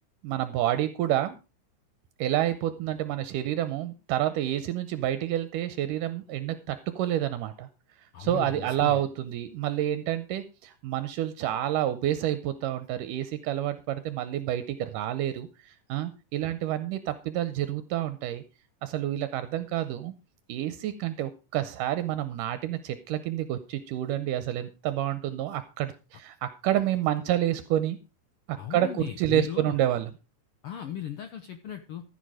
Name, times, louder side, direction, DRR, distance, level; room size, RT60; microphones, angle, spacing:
voice 1, 0.2-1.4 2.2-7.7 8.2-18.4 18.8-20.1 20.5-28.0 28.5-30.1, right 12 dB, 80° right, 12 dB, 2.3 m, -29 dB
voice 2, 8.1-9.0 28.6-29.8 30.6-32.0, left 10 dB, 85° left, 8 dB, 1.2 m, -37 dB
14.5 x 7.1 x 4.9 m, 0.31 s
omnidirectional pair, 3.9 m